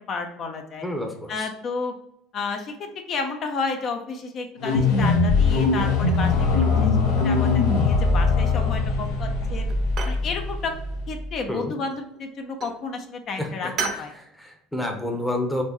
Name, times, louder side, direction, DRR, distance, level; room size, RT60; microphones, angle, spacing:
voice 1, 0.1-0.8 1.3-1.9 2.3-6.9 7.2-9.7 10.1-10.7 11.1-14.1, left 4 dB, 45° left, 5 dB, 0.6 m, -31 dB
voice 2, 0.8-1.5 11.5-11.7 13.4-15.6, left 1 dB, 5° left, 4 dB, 0.8 m, -30 dB
sound 1, 4.6-11.2, left 4 dB, 90° left, 1.3 m, -21 dB
sound 2, 6.1-6.8 7.2-7.8 8.6-9.1 9.4-10.3 11.7-12.2 12.6-12.8 13.8-14.1, right 5 dB, 45° right, 0.8 m, -35 dB
4.3 x 3.0 x 3.0 m, 0.77 s
supercardioid pair, 120°, 0 cm